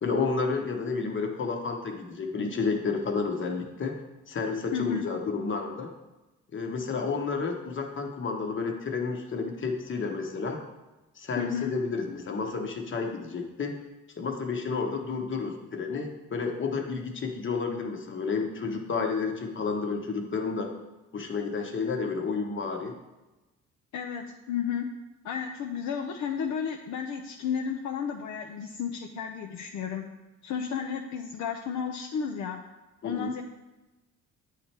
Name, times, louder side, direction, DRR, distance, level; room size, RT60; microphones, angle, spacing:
voice 1, 0.0-4.0 4.3-5.9 6.5-10.6 11.2-13.8 14.2-20.7 21.1-22.9 33.0-33.3, left 4 dB, 40° left, 3 dB, 1.0 m, -31 dB
voice 2, 4.7-5.1 11.4-11.7 23.9-24.9 25.2-30.1 30.4-32.6 33.0-33.4, left 7 dB, 70° left, 3 dB, 0.6 m, -32 dB
8.9 x 3.3 x 4.4 m, 1.1 s
cardioid pair, 90°, 30 cm